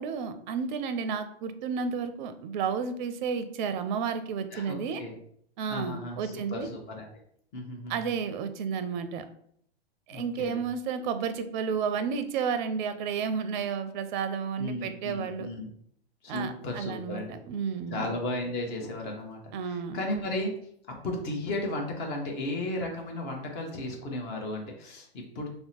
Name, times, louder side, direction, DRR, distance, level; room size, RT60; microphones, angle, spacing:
voice 1, 0.0-5.0 5.6-6.7 7.9-9.2 10.1-15.5 16.3-18.1 19.5-20.0, right 6 dB, 50° right, 10 dB, 0.5 m, -32 dB
voice 2, 4.5-5.2 5.7-7.1 7.5-8.1 10.1-10.6 14.6-15.7 16.2-17.4 17.9-20.5 21.0-25.5, left 1 dB, 30° left, 1 dB, 0.9 m, -35 dB
2.8 x 2.1 x 4.1 m, 0.66 s
hypercardioid pair, 120°, 31 cm